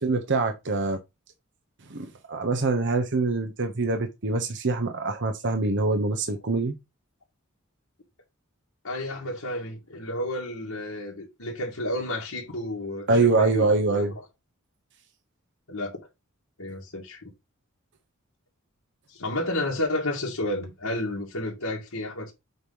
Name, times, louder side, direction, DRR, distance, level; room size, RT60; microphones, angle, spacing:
voice 1, 0.0-1.0 1.9-6.7 13.1-14.1, right 3 dB, 60° right, 0.9 m, -24 dB
voice 2, 8.8-14.1 15.7-16.0 16.6-17.3 19.1-22.3, left 1 dB, 85° left, 2.2 m, -31 dB
8.0 x 3.0 x 5.4 m
head